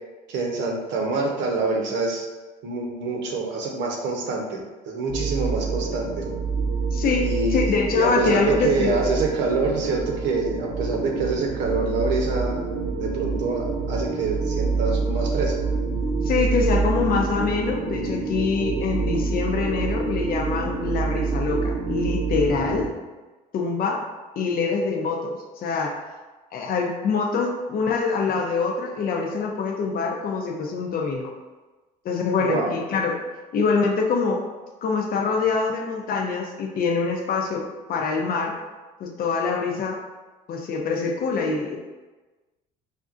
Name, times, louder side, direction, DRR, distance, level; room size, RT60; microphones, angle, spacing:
voice 1, 0.3-2.2 2.6-6.2 7.2-7.6 7.9-12.6 13.0-15.5 32.4-32.7, right 3 dB, 70° right, 0 dB, 0.9 m, -26 dB
sound 1, 5.1-22.9, right 4 dB, 40° right, 0.8 m, -27 dB
voice 2, 6.9-9.0 16.2-22.9 23.5-24.0 24.4-26.0 26.5-31.3 32.0-33.2 33.5-34.4 34.8-38.5 39.0-40.0 40.5-41.8, left 4 dB, 50° left, 0 dB, 0.6 m, -25 dB
5.1 x 2.5 x 2.5 m, 1.2 s
hypercardioid pair, 65°, 20 cm